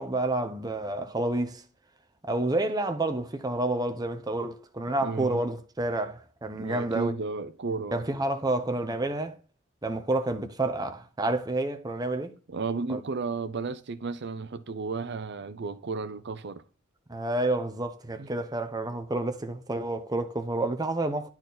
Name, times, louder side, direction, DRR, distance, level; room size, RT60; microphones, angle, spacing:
voice 1, 0.0-1.6 2.2-7.1 7.9-9.4 9.8-12.3 12.9-13.0 17.1-21.3, right 2 dB, 20° right, 0.8 m, -29 dB
voice 2, 5.0-5.4 6.6-8.1 12.5-16.6 18.2-18.3, right 4 dB, 55° right, 0.6 m, -33 dB
10.0 x 4.4 x 4.0 m
head